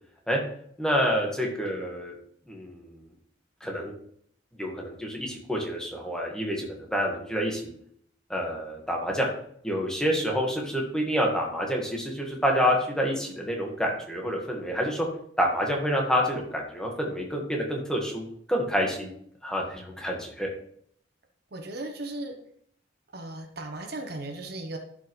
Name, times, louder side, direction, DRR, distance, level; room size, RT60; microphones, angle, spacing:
voice 1, 0.8-2.1 2.5-3.0 3.6-3.9 4.6-7.7 8.3-9.3 9.6-15.1 15.4-19.1 19.4-20.5, equal, 5° left, -1 dB, 1.5 m, -28 dB
voice 2, 21.5-22.4 23.1-24.8, right 2 dB, 55° right, 5 dB, 1.0 m, -36 dB
11.5 x 5.6 x 3.2 m, 0.66 s
head